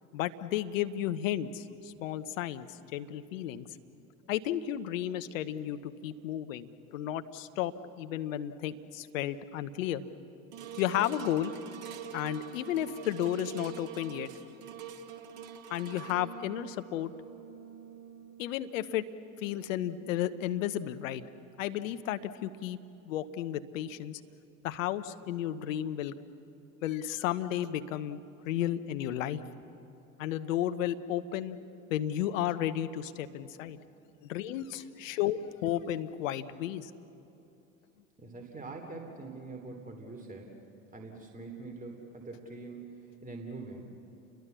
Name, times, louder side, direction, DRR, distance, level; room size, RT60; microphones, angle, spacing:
voice 1, 0.1-3.7 4.3-7.7 8.0-10.0 10.8-11.5 12.1-14.3 15.7-17.1 18.4-19.1 19.4-21.2 21.6-22.8 23.0-24.2 24.6-26.1 26.8-29.4 30.2-31.6 31.9-33.8 34.3-36.9, left 11 dB, 70° left, 11 dB, 1.1 m, -33 dB
sound 1, 10.5-20.9 21.5-21.6, right 7 dB, 65° right, 1.7 m, -46 dB
voice 2, 38.2-40.6 40.9-44.0, right 3 dB, 20° right, 2 dB, 3.2 m, -44 dB
29.5 x 22.0 x 7.0 m, 2.8 s
figure-of-eight pair, 65°, 40 cm